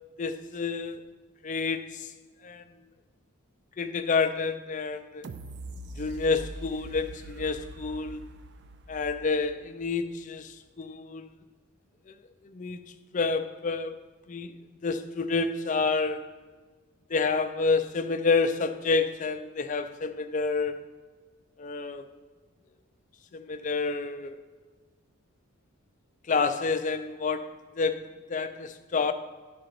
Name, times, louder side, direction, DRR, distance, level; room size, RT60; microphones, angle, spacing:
voice 1, 0.2-1.1 1.4-2.1 2.4-2.6 3.8-5.3 6.0-8.2 8.9-11.3 12.1-12.2 12.4-12.8 13.1-14.0 14.3-14.6 14.8-16.3 17.1-20.9 21.6-22.1 23.3-24.4 26.3-29.1, left 4 dB, 35° left, 0.4 m, -29 dB
sound 1, 5.2-10.1 10.6-10.7, right 1 dB, 55° right, 0.4 m, -43 dB
11.0 x 3.9 x 6.7 m
head